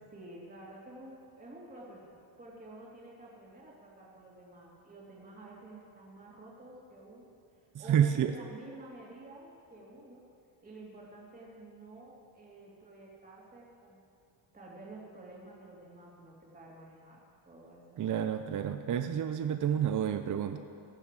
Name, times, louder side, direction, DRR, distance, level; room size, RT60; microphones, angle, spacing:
voice 1, 0.1-7.3 7.8-10.2 10.6-14.1 14.5-17.2 17.4-18.0, right 1 dB, 20° right, -4 dB, 3.0 m, -50 dB
voice 2, 7.9-8.3 18.0-20.6, right 9 dB, 40° right, 8 dB, 0.6 m, -29 dB
18.0 x 7.1 x 7.6 m, 2.5 s
cardioid pair, 130°, 46 cm